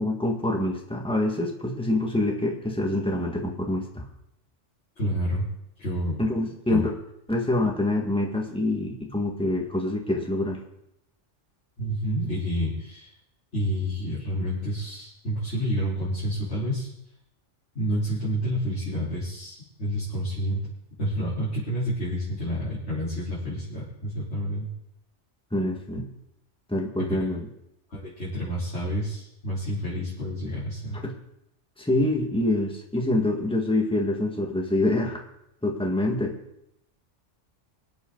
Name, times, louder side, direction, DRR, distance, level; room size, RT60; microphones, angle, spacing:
voice 1, 0.0-4.0 6.2-6.9 7.3-10.6 25.5-26.1 26.7-27.5 31.0-31.1 31.8-35.2 35.6-36.4, left 1 dB, 5° left, 0 dB, 1.7 m, -26 dB
voice 2, 5.0-5.5 5.8-6.2 6.7-6.8 11.8-13.1 13.5-16.9 17.7-20.6 21.0-24.7 27.0-27.3 27.9-31.0, equal, 65° left, -11 dB, 4.5 m, -29 dB
23.5 x 8.1 x 3.9 m, 0.80 s
omnidirectional pair, 1.3 m